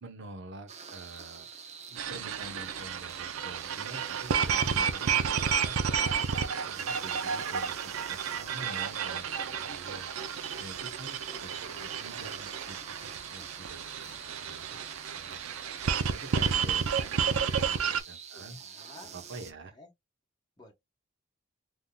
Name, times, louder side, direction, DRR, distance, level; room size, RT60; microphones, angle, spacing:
voice 1, 0.0-1.5 1.9-5.8 6.2-10.1 10.6-14.7 15.0-15.5 16.1-18.6 19.1-19.7, right 2 dB, 60° right, 0.9 m, -47 dB
sound 1, 0.7-19.5, right 6 dB, 35° right, 0.6 m, -47 dB
sound 2, 2.0-18.0, right 7 dB, 85° right, 0.5 m, -31 dB
voice 2, 11.0-12.0 18.3-19.2 19.5-19.9 20.6-20.7, left 1 dB, 20° left, 0.9 m, -55 dB
3.5 x 2.7 x 2.3 m
head